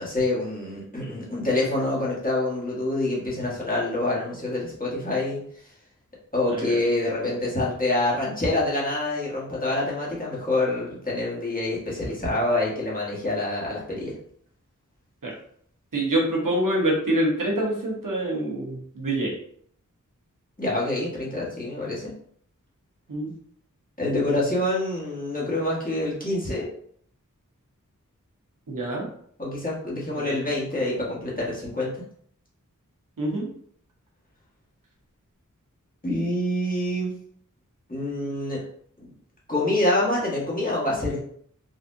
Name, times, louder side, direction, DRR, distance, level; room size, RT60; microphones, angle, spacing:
voice 1, 0.0-5.4 6.3-14.1 20.6-22.1 24.0-26.6 29.4-31.9 36.0-37.1 37.9-38.6 39.0-39.1 39.5-41.2, left 2 dB, 25° left, -6 dB, 1.5 m, -26 dB
voice 2, 6.5-6.8 12.0-12.1 15.2-15.3 15.9-19.3 23.1-23.3 28.7-29.1 30.1-30.4 33.2-33.5, right 1 dB, 80° right, -3 dB, 1.1 m, -26 dB
4.1 x 2.7 x 2.6 m, 0.62 s
wide cardioid pair, 45°, 32 cm